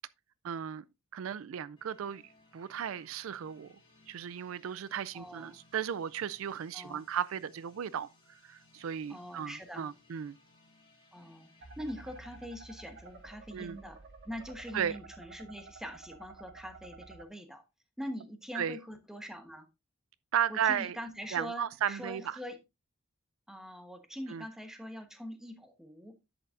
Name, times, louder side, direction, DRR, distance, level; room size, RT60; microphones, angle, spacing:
voice 1, 0.4-0.8 1.1-2.2 2.5-3.7 4.1-10.4 13.5-13.8 14.7-15.0 18.5-18.8 20.3-21.0 21.3-22.4 24.3-24.4, right 8 dB, 75° right, 0.4 m, -35 dB
sound 1, 1.8-15.5, left 2 dB, 25° left, 3.0 m, -65 dB
voice 2, 5.1-5.6 6.7-7.0 9.1-9.9 11.1-17.6 18.0-19.7 20.5-22.6 23.5-26.1, equal, 5° right, 1.1 m, -43 dB
sound 2, 11.6-17.2, right 3 dB, 55° right, 1.0 m, -52 dB
10.5 x 7.8 x 2.5 m
head